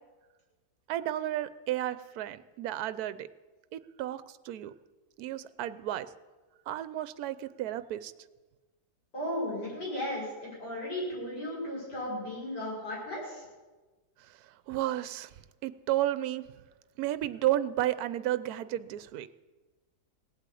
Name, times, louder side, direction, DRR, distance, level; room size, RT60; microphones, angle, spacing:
voice 1, 0.9-3.3 3.7-4.7 5.2-6.1 6.7-8.1 14.3-14.4 14.7-15.3 15.6-16.5 17.0-19.3, right 13 dB, 70° right, 14 dB, 1.1 m, -32 dB
voice 2, 9.1-13.4, left 1 dB, 80° left, -5 dB, 6.4 m, -35 dB
17.5 x 8.5 x 8.4 m, 1.2 s
omnidirectional pair, 1.8 m